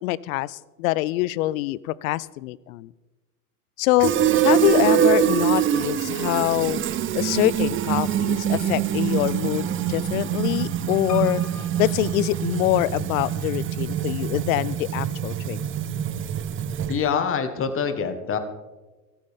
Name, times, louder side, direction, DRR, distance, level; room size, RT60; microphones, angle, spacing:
voice 1, 0.0-2.9 3.8-4.1 4.4-6.8 7.1-11.4 11.8-15.6, left 17 dB, 65° left, 22 dB, 0.6 m, -24 dB
Fill (with liquid), 4.0-17.1, right 9 dB, 25° right, 0.7 m, -24 dB
Piano, 11.1-13.1 13.7-14.4 14.7-14.8 15.0-15.1, left 6 dB, 90° left, 1.8 m, -43 dB
voice 2, 16.9-18.4, left 6 dB, 30° left, 9 dB, 1.6 m, -25 dB
15.0 x 13.5 x 3.7 m, 1.2 s
hypercardioid pair, 85°, 46 cm